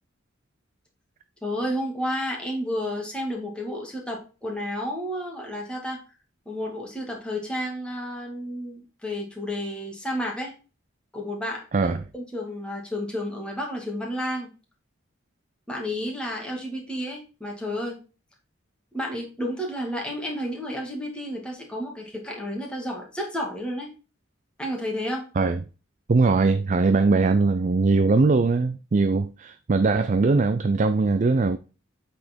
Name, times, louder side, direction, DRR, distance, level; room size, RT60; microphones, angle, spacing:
voice 1, 1.4-6.0 6.5-10.5 11.1-14.5 15.7-18.0 18.9-23.9 24.6-25.3, equal, 5° left, 2.1 m, -31 dB
voice 2, 11.7-12.0 25.4-25.6 26.1-31.6, right 3 dB, 40° right, 0.4 m, -21 dB
8.3 x 4.4 x 4.4 m
head